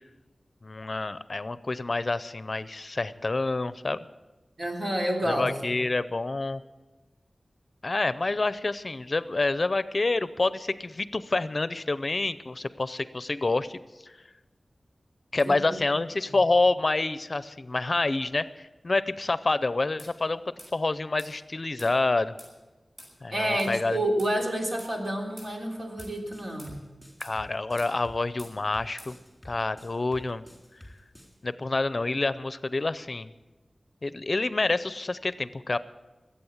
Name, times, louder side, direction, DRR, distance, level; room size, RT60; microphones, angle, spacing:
voice 1, 0.6-4.0 5.2-6.6 7.8-13.8 14.0-14.1 15.3-20.4 20.7-22.3 23.2-24.0 27.2-29.2 29.4-30.4 31.4-33.3 34.0-35.8, left 2 dB, 50° left, 15 dB, 0.5 m, -27 dB
voice 2, 4.6-5.5 15.4-15.8 23.3-26.8, right 1 dB, 60° right, 0 dB, 3.4 m, -29 dB
sound 1, 20.0-20.1 20.6-20.7 21.2-21.3 21.8-21.9 22.4-22.5 23.0-23.1 23.6-23.7 24.2-24.3 24.8-24.9 25.4-25.5 26.0-26.2 26.6-26.8 27.2-27.4 27.8-27.9 28.4-28.5 29.0-29.1, equal, 35° right, 6.9 m, -47 dB
sound 2, 26.0-31.3, left 1 dB, 5° left, 3.7 m, -49 dB
22.0 x 8.5 x 7.2 m, 1.2 s
wide cardioid pair, 80°, 0 cm